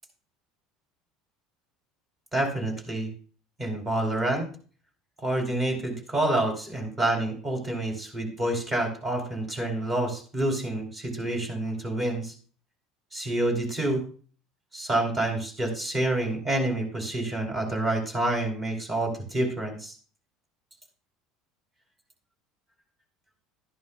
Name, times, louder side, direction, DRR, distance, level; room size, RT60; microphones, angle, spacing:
voice 1, 2.3-3.1 3.6-4.5 5.2-12.3 13.1-14.0 14.7-19.9, right 1 dB, 30° right, 3 dB, 3.2 m, -28 dB
11.5 x 11.0 x 2.3 m, 0.40 s
hypercardioid pair, 80°, 0 cm